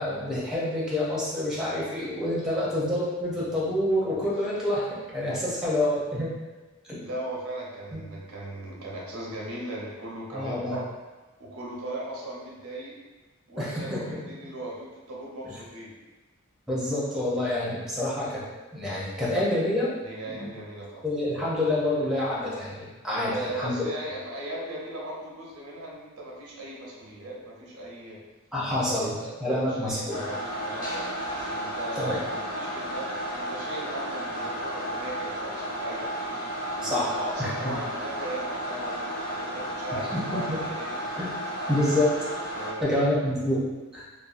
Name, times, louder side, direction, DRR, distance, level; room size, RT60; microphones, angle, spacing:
voice 1, 0.0-4.9 5.1-6.3 6.8-7.0 7.9-8.0 10.3-10.8 13.6-14.0 15.4-15.6 16.7-18.4 18.7-19.9 20.3-20.5 21.0-23.7 28.5-29.1 29.4-30.2 32.0-32.2 36.8-37.1 37.4-37.5 40.1-40.6 41.2-41.3 41.7-42.1 42.8-44.0, left 1 dB, ahead, -7 dB, 0.6 m, -27 dB
voice 2, 5.3-5.7 7.0-10.9 11.4-12.9 13.5-15.9 20.0-21.0 23.1-28.2 28.9-31.1 31.5-36.1 36.8-41.0 42.6-43.2, right 1 dB, 90° right, -4 dB, 0.7 m, -38 dB
sound 1, 30.1-42.7, equal, 40° left, 0.8 m, -33 dB
2.6 x 2.3 x 2.5 m, 1.2 s
head